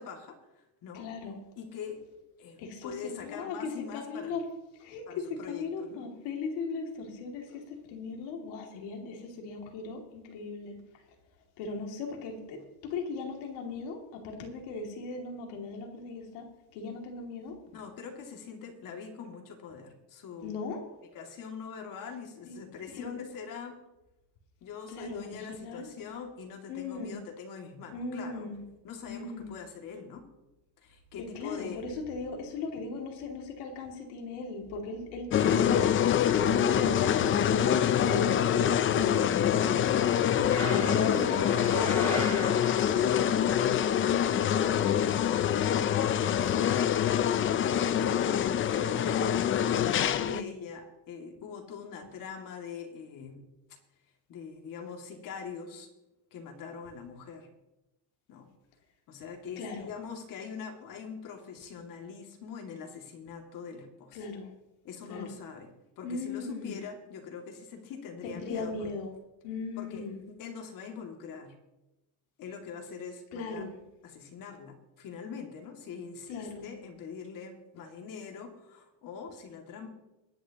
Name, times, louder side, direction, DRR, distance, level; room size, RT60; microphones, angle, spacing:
voice 1, 0.0-1.1 1.6-2.0 2.4-4.4 5.1-6.0 17.7-20.6 21.1-23.8 24.6-28.5 28.8-30.3 30.8-31.8 40.5-41.2 43.1-45.9 46.2-47.0 47.7-49.4 49.9-53.4 54.3-55.9 56.3-57.5 58.3-58.5 59.1-64.3 64.8-68.7 69.8-71.6 72.4-73.7 74.0-79.9, left 6 dB, 55° left, 3 dB, 2.5 m, -43 dB
voice 2, 0.9-1.4 2.6-4.5 4.8-10.8 11.6-17.6 20.4-20.8 22.4-22.6 22.9-23.1 24.9-25.9 26.7-27.2 27.9-28.6 29.1-29.5 31.2-35.9 36.3-40.0 40.7-42.5 42.8-43.3 50.1-50.4 59.6-59.9 64.1-64.5 65.1-65.4 66.0-66.8 68.4-69.1 69.4-70.2 73.3-73.8 76.3-76.7, left 4 dB, 90° left, 2 dB, 2.8 m, -38 dB
sound 1, 35.3-50.4, left 9 dB, 30° left, 0.5 m, -25 dB
sound 2, 40.5-43.1, equal, 5° left, 2.9 m, -36 dB
24.0 x 10.0 x 3.0 m, 0.97 s
cardioid pair, 150°, 40 cm